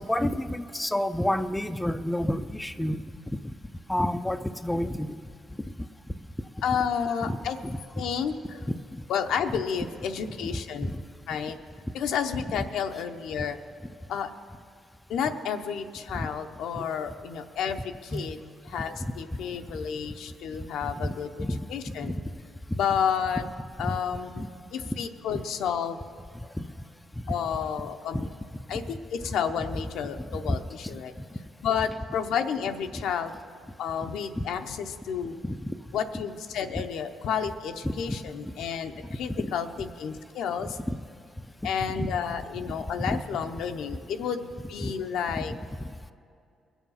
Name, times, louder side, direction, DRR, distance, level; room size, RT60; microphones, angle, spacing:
voice 1, 0.0-3.0 3.9-5.2 7.2-7.4 7.6-7.8 10.8-11.0 16.8-16.9 18.1-18.3 21.0-21.6 22.0-22.1 24.4-24.5 28.1-28.3 30.2-30.6 30.8-31.0 34.4-34.5 35.4-35.7 37.8-38.2 39.4-39.6 40.6-41.0 41.9-42.1 43.1-43.2 44.8-44.9, left 1 dB, 10° left, 9 dB, 0.5 m, -29 dB
voice 2, 6.6-7.6 8.0-8.6 9.1-10.9 11.3-11.6 11.9-13.6 14.1-14.3 15.1-18.4 18.6-22.1 22.7-23.4 23.8-24.4 24.7-26.0 27.3-28.3 28.7-31.1 31.6-33.3 33.8-35.4 35.9-40.8 41.6-45.5, left 7 dB, 80° left, 6 dB, 0.7 m, -31 dB
21.0 x 7.2 x 5.6 m, 2.4 s
cardioid pair, 90°, 0 cm